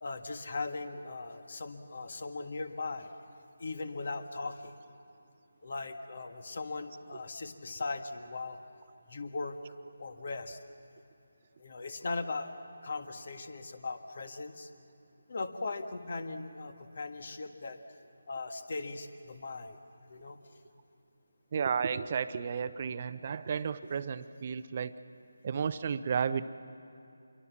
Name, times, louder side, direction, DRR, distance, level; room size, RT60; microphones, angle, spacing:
voice 1, 0.0-3.1 3.6-4.8 5.6-8.6 9.1-9.6 10.0-10.6 11.6-12.5 12.8-14.7 15.3-18.0 18.3-19.8 20.1-20.4, left 3 dB, 55° left, 8 dB, 1.7 m, -39 dB
voice 2, 21.5-25.0 25.4-26.4, right 6 dB, 35° right, 12 dB, 0.7 m, -32 dB
27.5 x 23.0 x 7.3 m, 2.6 s
figure-of-eight pair, 160°, 0 cm